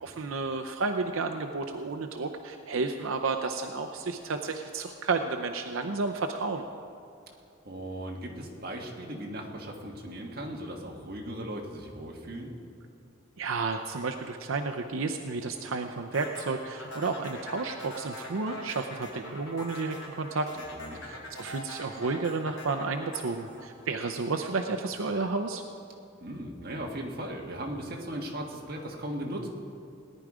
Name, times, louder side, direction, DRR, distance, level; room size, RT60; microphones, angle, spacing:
voice 1, 0.0-6.7 13.4-20.5 21.0-25.6, right 3 dB, 85° right, 5 dB, 0.6 m, -32 dB
voice 2, 7.6-12.5 20.6-21.0 26.2-29.5, right 1 dB, 50° right, 0 dB, 1.7 m, -38 dB
sound 1, 16.1-24.5, left 1 dB, 80° left, 4.0 m, -43 dB
18.0 x 10.5 x 5.0 m, 2.5 s
head